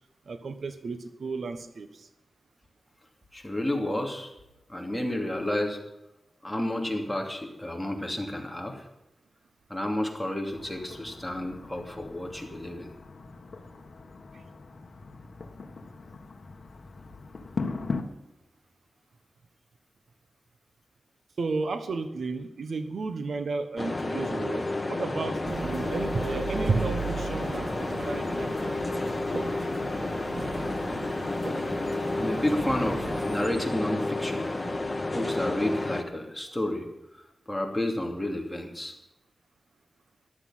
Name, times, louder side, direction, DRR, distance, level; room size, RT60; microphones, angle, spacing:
voice 1, 0.3-2.1 14.3-14.4 21.4-28.8, right 4 dB, 70° right, 9 dB, 1.2 m, -33 dB
voice 2, 3.3-4.3 4.7-5.8 6.4-8.9 9.7-12.9 32.2-34.5 35.1-36.9 37.1-37.2 37.5-38.9, left 1 dB, 5° left, 1 dB, 2.6 m, -31 dB
sound 1, 10.5-18.0, left 4 dB, 50° left, 1.6 m, -39 dB
sound 2, 23.8-36.0, left 2 dB, 25° left, 1.5 m, -31 dB
sound 3, 25.4-33.5, right 4 dB, 45° right, 0.9 m, -37 dB
14.0 x 12.0 x 5.8 m, 0.93 s
wide cardioid pair, 125°, 0 cm